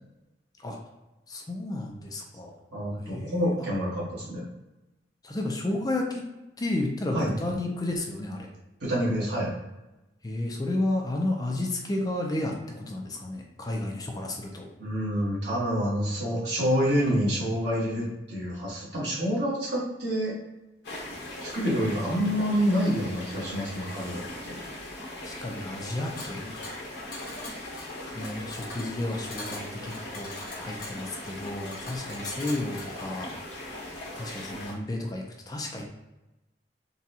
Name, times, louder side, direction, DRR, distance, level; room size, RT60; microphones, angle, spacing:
voice 1, 1.3-2.6 2.9-3.7 5.2-6.2 6.6-8.5 10.2-14.7 21.9-22.2 25.1-26.6 28.1-33.8 34.2-35.9, left 1 dB, 20° left, 1 dB, 0.4 m, -32 dB
voice 2, 2.7-4.4 7.1-7.3 8.8-9.5 14.8-20.3 21.4-24.6, equal, 75° right, -7 dB, 1.5 m, -27 dB
sound 1, 20.8-34.7, left 1 dB, 70° left, 1.2 m, -40 dB
sound 2, 26.2-33.1, left 2 dB, 55° left, 0.9 m, -43 dB
4.0 x 2.3 x 2.7 m, 1.0 s
head